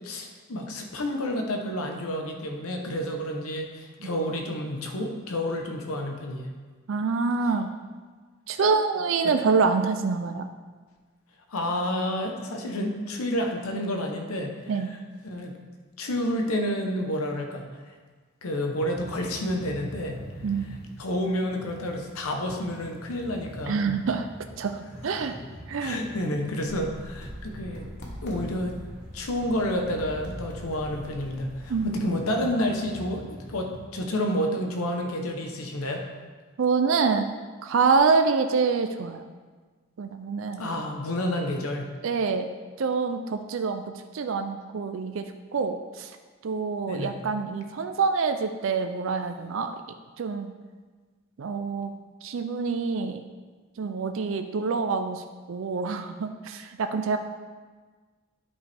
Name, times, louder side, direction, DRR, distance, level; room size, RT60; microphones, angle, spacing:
voice 1, 0.0-6.5 9.2-9.3 11.5-14.9 15.2-15.5 16.0-17.9 18.4-20.2 21.0-24.0 25.0-25.1 25.8-27.9 28.2-28.8 29.1-33.2 33.5-36.1 40.6-41.9 46.9-47.1, left 1 dB, 85° left, 2 dB, 0.9 m, -30 dB
voice 2, 6.9-7.7 8.5-10.5 14.7-15.0 20.4-20.8 23.7-24.3 24.6-25.3 25.7-26.0 31.7-32.0 36.6-37.3 37.6-39.3 40.0-40.6 42.0-42.5 42.8-43.8 44.1-45.3 45.5-46.1 46.4-49.7 50.2-50.5 51.4-51.9 52.2-53.2 53.8-55.2 55.5-57.2, right 4 dB, 60° right, 7 dB, 0.4 m, -26 dB
sound 1, 18.8-33.8, equal, 5° right, 1.9 m, -44 dB
sound 2, 26.6-32.1, equal, 55° left, 1.1 m, -43 dB
9.6 x 5.4 x 3.4 m, 1.4 s
head